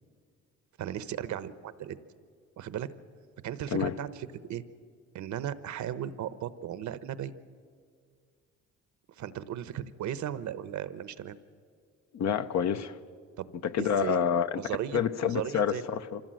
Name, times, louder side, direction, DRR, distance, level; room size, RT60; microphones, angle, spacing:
voice 1, 0.8-2.0 2.6-2.9 3.4-4.6 5.1-7.3 9.2-11.4 13.4-14.2 14.6-15.8, right 10 dB, 70° right, 0.9 m, -36 dB
voice 2, 12.1-13.0 13.6-14.5 14.9-16.2, left 8 dB, 60° left, 0.9 m, -28 dB
25.0 x 16.0 x 7.7 m
cardioid pair, 90°, 30 cm